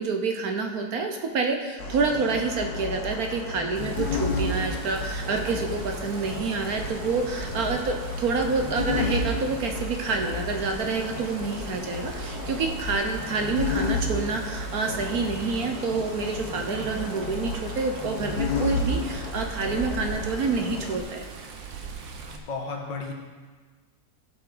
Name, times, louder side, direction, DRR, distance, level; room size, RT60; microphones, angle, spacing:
voice 1, 0.0-21.2, right 4 dB, 60° right, 4 dB, 1.2 m, -28 dB
sound 1, 1.8-21.0, left 3 dB, 60° left, 1.5 m, -32 dB
Water, 3.7-22.4, right 5 dB, 90° right, 1.7 m, -41 dB
voice 2, 22.3-23.1, left 4 dB, 75° left, 1 dB, 2.1 m, -33 dB
16.0 x 7.5 x 3.9 m, 1.4 s
omnidirectional pair, 2.0 m